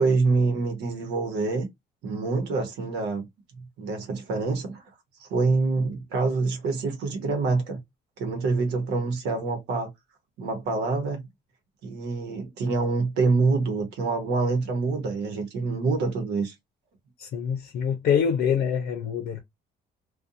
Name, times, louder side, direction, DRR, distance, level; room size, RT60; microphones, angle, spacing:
voice 1, 0.0-1.7 2.0-4.8 5.2-7.8 8.2-9.9 10.4-11.3 11.8-16.5, right 3 dB, 80° right, 0.9 m, -26 dB
voice 2, 17.2-19.4, left 7 dB, 65° left, 0.6 m, -25 dB
2.4 x 2.2 x 2.6 m
cardioid pair, 110°, 17 cm